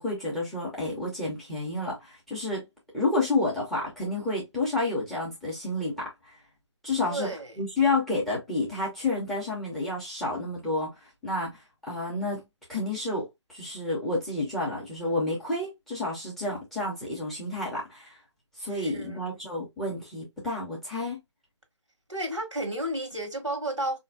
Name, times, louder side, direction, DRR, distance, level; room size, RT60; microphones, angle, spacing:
voice 1, 0.0-2.6 2.9-6.3 6.8-7.3 7.6-10.9 11.2-12.4 12.7-13.2 13.5-18.1 18.6-21.2, left 2 dB, ahead, 0.5 m, -30 dB
voice 2, 7.0-7.6 18.7-19.2 22.1-24.0, right 1 dB, 85° right, 1.2 m, -32 dB
3.9 x 2.6 x 2.2 m
figure-of-eight pair, 145°, 15 cm